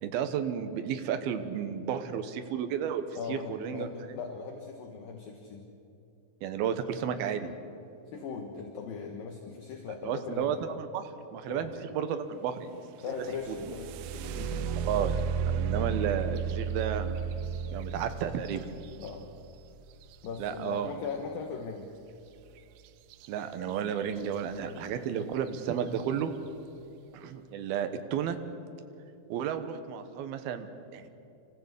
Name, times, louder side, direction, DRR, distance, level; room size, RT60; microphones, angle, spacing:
voice 1, 0.0-4.2 6.4-7.5 10.0-12.8 13.5-13.6 14.8-15.2 15.5-17.2 17.7-18.7 20.4-21.0 23.3-26.3 27.1-28.4 29.3-31.1, right 8 dB, 70° right, 8 dB, 2.6 m, -32 dB
voice 2, 3.2-5.7 8.1-10.6 11.5-11.7 13.0-14.8 19.0-19.2 20.2-21.9, left 5 dB, 65° left, 3 dB, 2.6 m, -39 dB
sound 1, 13.2-21.0 23.1-23.3 23.7-24.3 24.9-25.0 25.5-25.8, right 6 dB, 90° right, 3.0 m, -34 dB
26.5 x 15.5 x 8.2 m, 2.7 s
omnidirectional pair, 5.3 m